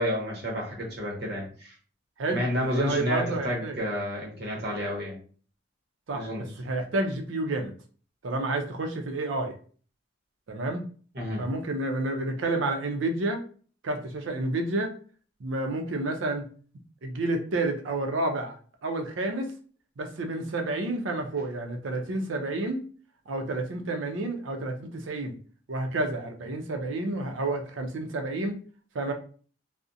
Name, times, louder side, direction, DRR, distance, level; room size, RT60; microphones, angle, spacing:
voice 1, 0.0-1.7 2.3-5.2 6.1-6.4 11.1-11.5, left 1 dB, 55° right, -2 dB, 0.9 m, -30 dB
voice 2, 2.2-3.8 6.1-7.7 8.2-9.5 10.5-10.9 11.4-13.4 13.8-14.9 15.4-16.5 17.0-18.6 18.8-19.5 20.0-22.8 23.3-25.3 25.7-28.6 28.9-29.1, right 2 dB, 80° right, 5 dB, 0.5 m, -30 dB
2.5 x 2.0 x 2.6 m, 0.42 s
head